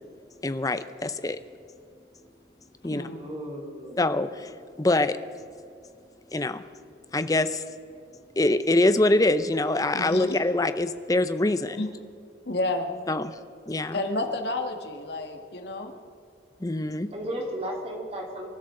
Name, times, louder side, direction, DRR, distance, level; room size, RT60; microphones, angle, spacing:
voice 1, 0.4-1.4 2.8-3.0 4.0-5.2 6.3-6.6 7.1-7.6 8.4-11.8 13.1-13.4 13.7-14.0 16.6-17.1, left 2 dB, 20° left, 11 dB, 0.6 m, -24 dB
voice 2, 3.1-4.0 17.1-18.5, equal, 35° right, 0 dB, 2.9 m, -34 dB
voice 3, 9.9-10.4 11.8-11.9 12.5-12.9 13.9-15.9, left 2 dB, 65° left, 5 dB, 1.7 m, -30 dB
27.0 x 13.0 x 3.8 m, 2.5 s
head